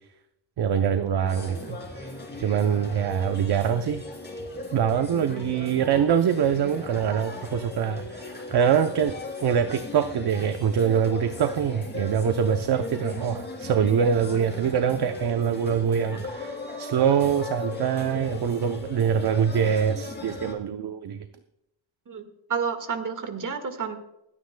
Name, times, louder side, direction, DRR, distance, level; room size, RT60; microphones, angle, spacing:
voice 1, 0.6-1.8 2.4-4.0 4.7-21.3, right 8 dB, 60° right, 8 dB, 0.7 m, -24 dB
sound 1, 1.2-20.5, left 2 dB, 25° left, 3.0 m, -37 dB
voice 2, 22.1-24.0, right 6 dB, 45° right, 7 dB, 1.8 m, -30 dB
28.5 x 9.8 x 2.2 m, 0.85 s
wide cardioid pair, 155°, 44 cm